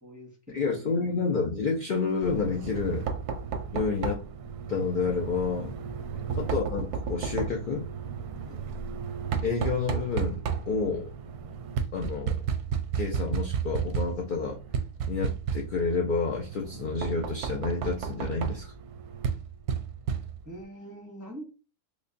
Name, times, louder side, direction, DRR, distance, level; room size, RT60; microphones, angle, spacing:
voice 1, 0.0-1.1 6.1-6.2 8.4-8.6 20.4-21.5, right 1 dB, 20° right, 0 dB, 0.5 m, -45 dB
voice 2, 0.5-3.1 3.7-4.2 4.7-5.7 6.4-7.9 9.4-11.1 11.9-12.4 12.9-14.6 15.1-18.7, left 4 dB, 70° left, 0 dB, 0.4 m, -29 dB
Knock, 2.2-20.6, right 7 dB, 90° right, 1.1 m, -33 dB
4.9 x 2.2 x 2.5 m, 0.32 s
omnidirectional pair, 1.6 m